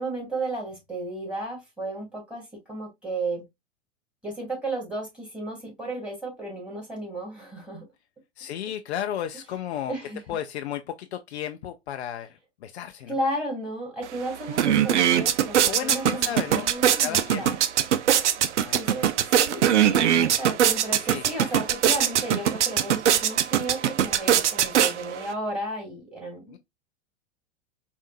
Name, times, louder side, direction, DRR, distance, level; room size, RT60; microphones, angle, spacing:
voice 1, 0.0-3.5 4.2-7.9 9.9-10.2 13.1-17.6 18.7-26.6, right 1 dB, 5° right, 2.6 m, -33 dB
voice 2, 8.4-9.9 10.3-13.2 15.6-16.7 17.0-17.5 18.6-18.7 21.0-21.5 26.5-26.6, left 10 dB, 65° left, 0.6 m, -34 dB
sound 1, 14.0-14.1 14.4-25.3, right 10 dB, 75° right, 0.6 m, -22 dB
4.9 x 2.6 x 2.5 m
hypercardioid pair, 105°, 35 cm